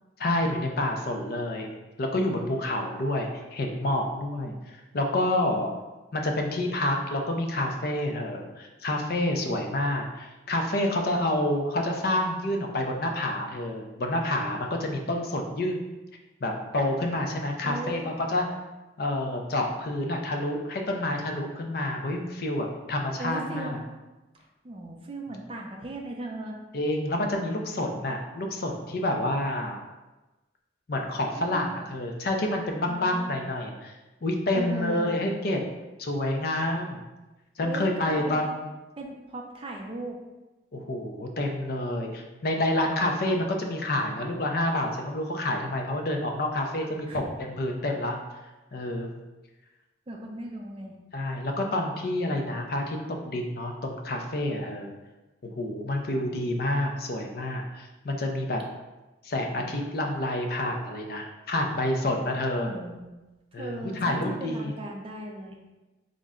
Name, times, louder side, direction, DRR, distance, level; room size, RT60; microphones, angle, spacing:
voice 1, 0.2-1.7 2.0-5.7 6.1-15.8 16.4-18.4 19.0-23.8 26.7-29.8 30.9-33.9 34.2-35.6 36.0-37.0 37.6-38.6 40.7-48.2 48.7-49.1 51.1-53.0 53.2-54.9 55.4-58.6 59.2-62.7 63.5-64.7, left 1 dB, 50° left, 2 dB, 0.4 m, -28 dB
voice 2, 17.6-18.1 23.2-23.8 24.6-26.6 31.4-31.7 32.9-33.3 34.5-35.1 37.6-38.4 39.0-40.2 47.1-47.2 48.8-48.9 50.1-51.0 62.6-63.1 63.6-65.6, right 1 dB, 30° right, 0 dB, 0.4 m, -37 dB
3.7 x 2.1 x 3.6 m, 1.1 s
head